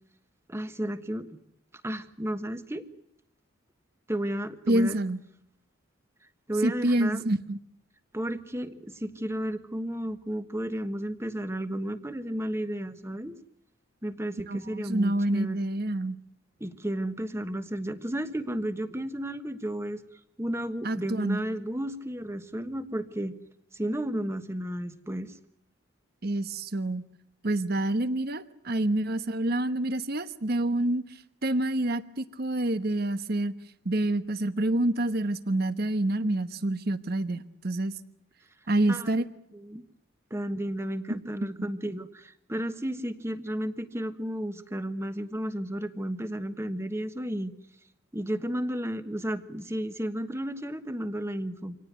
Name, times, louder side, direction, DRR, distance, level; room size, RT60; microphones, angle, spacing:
voice 1, 0.5-1.4 1.8-2.8 4.1-5.0 6.5-7.2 8.1-13.4 14.0-15.7 16.6-20.0 20.4-23.3 23.7-25.3 38.9-39.2 39.5-39.8 40.3-47.5 48.1-51.8, right 1 dB, 15° right, 10 dB, 1.3 m, -33 dB
voice 2, 4.7-5.2 6.6-7.6 14.5-16.2 20.8-21.4 26.2-27.0 27.4-31.0 31.4-33.5 33.8-37.9 38.7-39.3 41.1-41.2 41.6-41.7, right 1 dB, 50° right, 12 dB, 1.1 m, -27 dB
26.0 x 18.5 x 9.6 m, 0.74 s
head